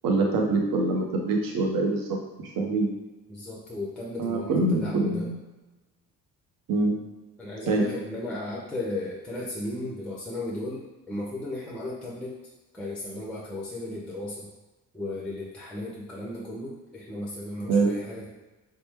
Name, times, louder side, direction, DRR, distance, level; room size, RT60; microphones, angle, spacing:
voice 1, 0.0-2.9 4.2-5.3 6.7-7.0 7.7-7.8 17.7-17.9, right 3 dB, 45° right, 1 dB, 0.8 m, -25 dB
voice 2, 3.3-5.3 7.4-12.4 12.7-14.5 14.9-18.3, left 1 dB, ahead, -5 dB, 0.7 m, -35 dB
3.0 x 2.2 x 3.1 m, 1.1 s
figure-of-eight pair, 45°, 50 cm